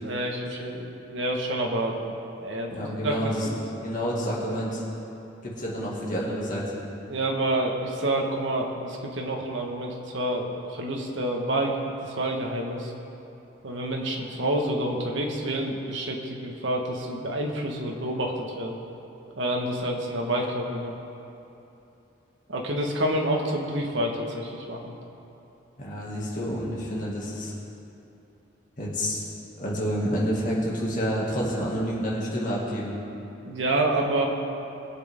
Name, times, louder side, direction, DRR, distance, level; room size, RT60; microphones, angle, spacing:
voice 1, 0.0-2.1 2.4-3.2 3.4-3.5 7.1-11.8 12.0-12.9 13.6-18.8 19.4-20.9 22.5-24.9 33.4-34.3, right 1 dB, 75° right, 0 dB, 1.5 m, -28 dB
voice 2, 2.7-3.5 3.8-4.8 5.4-6.8 25.8-27.5 28.8-29.3 29.6-33.0, equal, 40° left, -4 dB, 2.3 m, -29 dB
21.0 x 7.7 x 3.7 m, 2.9 s
head